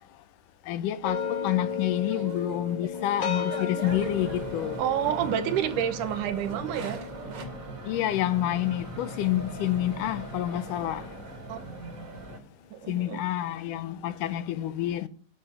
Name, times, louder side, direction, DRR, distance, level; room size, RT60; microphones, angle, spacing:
voice 1, 0.7-4.8 7.9-11.1 12.9-15.1, left 13 dB, 80° left, 2.4 m, -28 dB
sound 1, 1.0-10.2, left 6 dB, 65° left, 1.2 m, -36 dB
sound 2, 1.2-7.5, right 4 dB, 50° right, 2.6 m, -43 dB
sound 3, 3.8-12.4, right 2 dB, 30° right, 2.1 m, -40 dB
voice 2, 4.8-7.0 11.5-11.6 12.7-13.2, right 10 dB, 80° right, 2.5 m, -29 dB
12.0 x 6.2 x 8.1 m
omnidirectional pair, 3.7 m